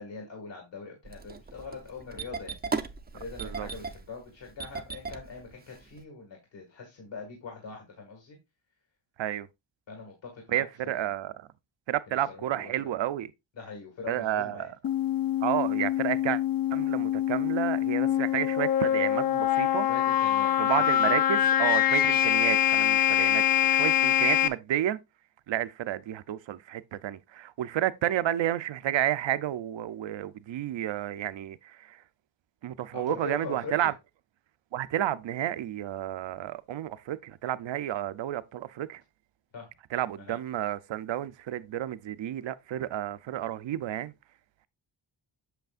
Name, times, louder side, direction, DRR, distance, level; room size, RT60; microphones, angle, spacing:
voice 1, 0.0-2.8 3.1-8.4 9.9-11.1 12.1-12.7 13.6-14.7 19.8-20.8 32.9-33.9 39.5-39.7 40.2-40.4, left 4 dB, 60° left, 2.2 m, -42 dB
Engine starting, 1.0-6.0, right 4 dB, 20° right, 0.5 m, -37 dB
voice 2, 10.5-11.5 11.9-13.3 14.1-14.7 15.4-16.4 16.7-19.9 20.6-25.0 25.5-32.0 32.6-33.9 34.7-39.0 39.9-44.1, right 12 dB, 65° right, 0.6 m, -31 dB
sound 1, 14.8-24.5, left 11 dB, 45° left, 0.6 m, -24 dB
8.1 x 6.9 x 2.5 m
wide cardioid pair, 160°, 49 cm